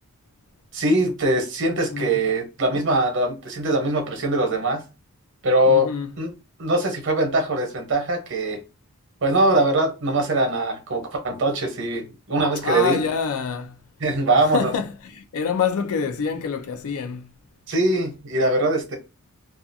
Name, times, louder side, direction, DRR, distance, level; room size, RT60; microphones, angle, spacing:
voice 1, 0.7-4.8 5.4-5.9 6.2-6.3 6.6-8.6 9.2-13.0 14.0-14.7 17.7-18.9, right 1 dB, 55° right, 0.9 m, -22 dB
voice 2, 1.9-2.2 5.7-6.1 12.6-13.8 14.4-17.3, left 6 dB, 75° left, 0.4 m, -26 dB
2.4 x 2.4 x 2.6 m
head